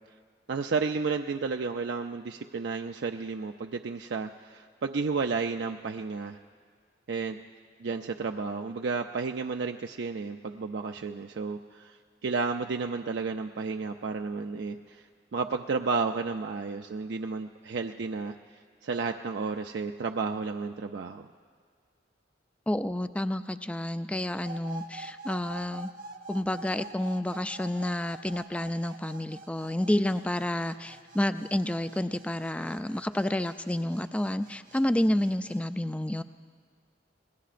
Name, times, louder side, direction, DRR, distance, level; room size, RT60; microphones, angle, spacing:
voice 1, 0.5-6.4 7.1-7.4 7.8-15.0 15.3-18.3 18.8-21.3, right 4 dB, 65° right, 4 dB, 0.4 m, -32 dB
voice 2, 22.7-25.9 26.3-36.2, left 1 dB, 5° left, 10 dB, 0.3 m, -29 dB
sound 1, 24.5-35.6, right 3 dB, 50° right, 0.8 m, -47 dB
27.0 x 20.5 x 2.5 m, 2.1 s
head